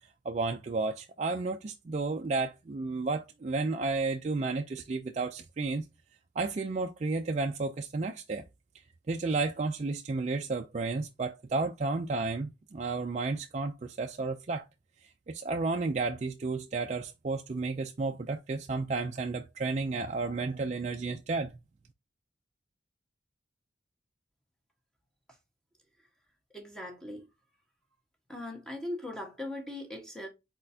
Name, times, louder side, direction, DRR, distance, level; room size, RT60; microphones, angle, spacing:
voice 1, 0.2-5.8 6.4-8.4 9.1-14.6 15.0-21.5, right 3 dB, 35° right, 0.3 m, -32 dB
voice 2, 26.5-27.3 28.3-30.3, left 1 dB, 5° left, 1.1 m, -39 dB
4.3 x 4.2 x 2.7 m
head